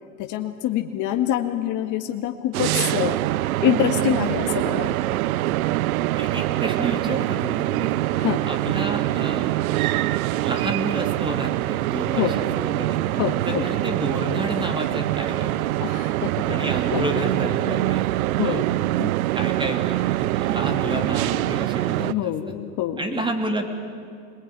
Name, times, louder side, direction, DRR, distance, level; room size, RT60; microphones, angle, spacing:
voice 1, 0.2-3.2 3.6-5.2 8.1-8.4 12.1-12.4 13.1-13.7 15.8-16.6 16.9-17.0 17.6-17.9 18.3-19.1 22.0-23.1, left 11 dB, 45° left, 4 dB, 1.9 m, -26 dB
sound 1, 2.5-22.1, right 16 dB, 80° right, 0.7 m, -24 dB
voice 2, 6.2-7.9 8.4-9.6 10.3-13.0 13.4-15.9 16.5-18.1 18.4-18.9 19.4-22.3 23.0-23.6, right 1 dB, 10° right, 4 dB, 3.4 m, -30 dB
26.5 x 20.5 x 9.8 m, 2.3 s
supercardioid pair, 110°, 41 cm